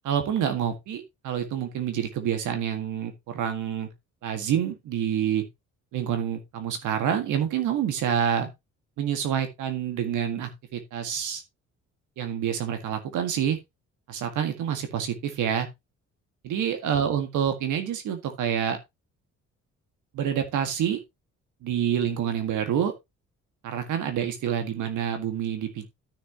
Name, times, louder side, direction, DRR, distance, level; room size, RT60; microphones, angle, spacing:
voice 1, 0.0-3.9 4.2-5.4 5.9-8.5 9.0-11.4 12.2-13.6 14.1-15.7 16.4-18.8 20.1-21.0 21.6-22.9 23.6-25.9, right 9 dB, 85° right, 1.9 m, -27 dB
12.5 x 6.3 x 2.9 m
cardioid pair, 90°, 30 cm